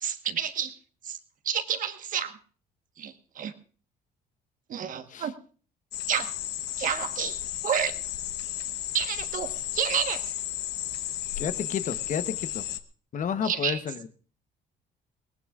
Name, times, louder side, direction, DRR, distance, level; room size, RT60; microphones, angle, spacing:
voice 1, 0.0-0.8 1.1-1.2 1.4-2.4 3.0-3.5 4.7-5.3 6.1-6.3 6.8-7.9 8.9-10.3 13.4-13.8, right 8 dB, 50° right, 8 dB, 1.3 m, -30 dB
sound 1, 5.9-12.8, left 13 dB, 80° left, 1.0 m, -34 dB
voice 2, 11.4-12.6 13.1-14.1, left 7 dB, 50° left, 11 dB, 1.0 m, -31 dB
21.0 x 18.0 x 2.4 m, 0.41 s
cardioid pair, 110°, 17 cm